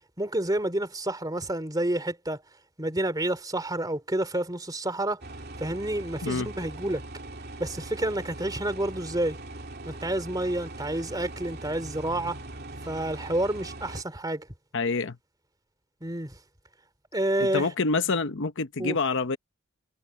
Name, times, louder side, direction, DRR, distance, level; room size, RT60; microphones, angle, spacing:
voice 1, 0.2-2.4 2.8-5.2 5.6-7.0 7.6-9.4 9.8-12.4 12.8-14.5 16.0-16.4 17.1-17.7 18.8-19.0, right 1 dB, 15° right, 3.0 m, -29 dB
sound 1, 5.2-14.0, right 2 dB, 45° right, 2.6 m, -41 dB
voice 2, 14.7-15.2 17.4-19.4, left 4 dB, 55° left, 0.9 m, -27 dB
head